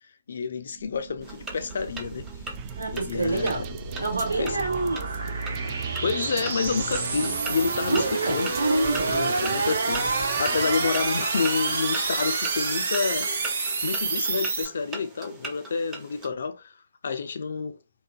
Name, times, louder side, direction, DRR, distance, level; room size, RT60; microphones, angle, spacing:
voice 1, 0.3-2.3 2.9-3.6 4.4-4.6 6.0-8.5 9.1-13.3 13.8-16.7 17.0-17.8, left 5 dB, 65° left, 0.4 m, -29 dB
sound 1, 0.7-14.7, right 4 dB, 65° right, 1.0 m, -29 dB
sound 2, 1.2-16.3, right 2 dB, 15° right, 0.7 m, -41 dB
sound 3, 2.6-11.2, right 9 dB, 30° right, 0.3 m, -42 dB
voice 2, 2.8-3.7 4.0-5.1 7.9-9.1, right 2 dB, 85° right, 1.3 m, -27 dB
2.7 x 2.4 x 2.2 m
figure-of-eight pair, 135°, 0 cm